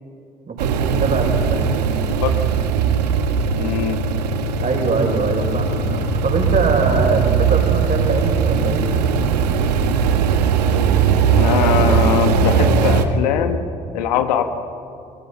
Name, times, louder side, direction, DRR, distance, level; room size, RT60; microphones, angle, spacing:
voice 1, 0.5-1.7 4.6-8.9, right 3 dB, 40° right, 2 dB, 6.4 m, -22 dB
sound 1, 0.6-13.0, right 6 dB, 80° right, 1.5 m, -19 dB
voice 2, 3.6-4.0 11.4-13.6 13.9-14.4, left 9 dB, 75° left, 8 dB, 1.5 m, -21 dB
29.0 x 23.5 x 5.8 m, 2.6 s
hypercardioid pair, 50°, 21 cm